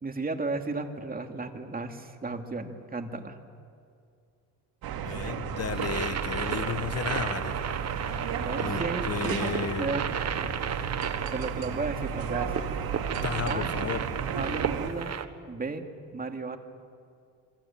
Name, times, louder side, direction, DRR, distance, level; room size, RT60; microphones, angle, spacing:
voice 1, 0.0-3.4 8.4-10.1 11.3-12.6 13.5-13.7 14.4-15.1 15.5-15.9 16.1-16.6, right 3 dB, 25° right, 5 dB, 2.5 m, -34 dB
sound 1, 4.8-14.9, right 6 dB, 70° right, 2.6 m, -33 dB
voice 2, 5.0-7.7 8.6-10.0 13.2-14.0, left 7 dB, 40° left, 13 dB, 1.3 m, -34 dB
sound 2, 5.7-15.2, right 8 dB, 45° right, 1.4 m, -34 dB
27.0 x 24.5 x 7.4 m, 2.3 s
supercardioid pair, 80°, 37 cm